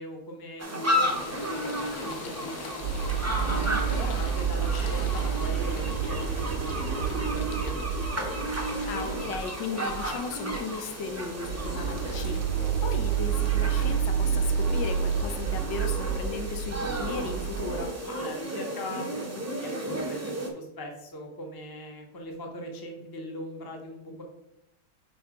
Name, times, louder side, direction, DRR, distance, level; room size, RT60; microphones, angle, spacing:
voice 1, 0.0-2.8 3.4-7.8 18.2-24.2, equal, 20° left, 2 dB, 0.7 m, -40 dB
sound 1, 0.6-20.5, equal, 20° right, 0.4 m, -34 dB
sound 2, 0.9-15.7, left 5 dB, 65° left, 1.2 m, -44 dB
sound 3, 2.8-9.5 9.9-10.2 10.5-10.7 11.1-17.9, right 7 dB, 75° right, 1.2 m, -29 dB
voice 2, 3.7-4.2 8.9-18.0, left 5 dB, 85° left, 7 dB, 1.4 m, -36 dB
5.6 x 3.9 x 5.0 m, 0.84 s
omnidirectional pair, 1.9 m